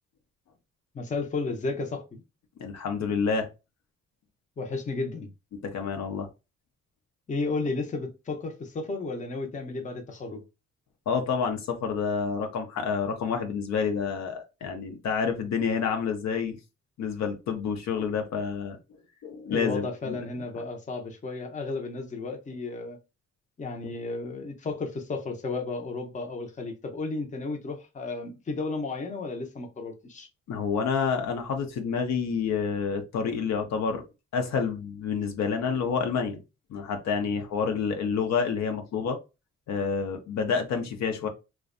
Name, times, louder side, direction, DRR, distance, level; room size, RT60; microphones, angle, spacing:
voice 1, 0.9-2.2 4.6-5.3 7.3-10.4 19.5-23.0 23.6-30.3, left 3 dB, 25° left, 0.6 m, -33 dB
voice 2, 2.6-3.5 5.5-6.3 11.1-16.6 17.0-18.8 19.2-20.2 30.5-34.0 34.3-36.4 36.7-39.2 39.7-41.3, left 6 dB, 65° left, 0.6 m, -28 dB
2.5 x 2.2 x 2.4 m
cardioid pair, 90°, 30 cm